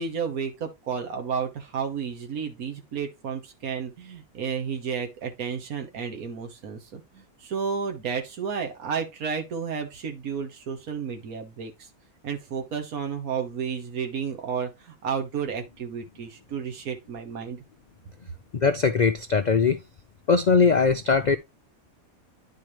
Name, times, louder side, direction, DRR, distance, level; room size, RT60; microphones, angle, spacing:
voice 1, 0.0-11.9 12.2-17.6, right 6 dB, 75° right, 1.7 m, -32 dB
voice 2, 18.5-19.8 20.3-21.4, left 5 dB, 80° left, 0.4 m, -20 dB
10.5 x 4.5 x 3.1 m
omnidirectional pair, 1.5 m